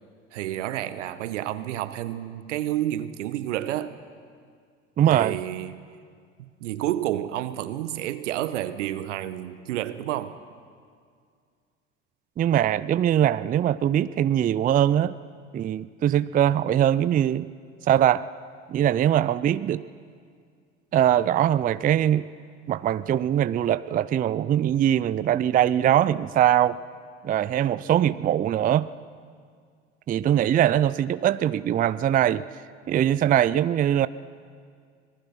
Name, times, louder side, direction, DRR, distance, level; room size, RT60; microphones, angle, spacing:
voice 1, 0.3-4.0 5.1-5.8 6.4-10.4, right 13 dB, 75° right, 13 dB, 1.1 m, -30 dB
voice 2, 5.0-5.4 12.4-15.1 15.5-17.5 17.8-18.2 18.7-19.8 20.9-22.3 22.7-26.8 27.2-28.9 30.1-32.4 32.9-34.1, right 11 dB, 25° right, 16 dB, 0.4 m, -22 dB
25.5 x 19.0 x 5.9 m, 2.1 s
hypercardioid pair, 70°, 37 cm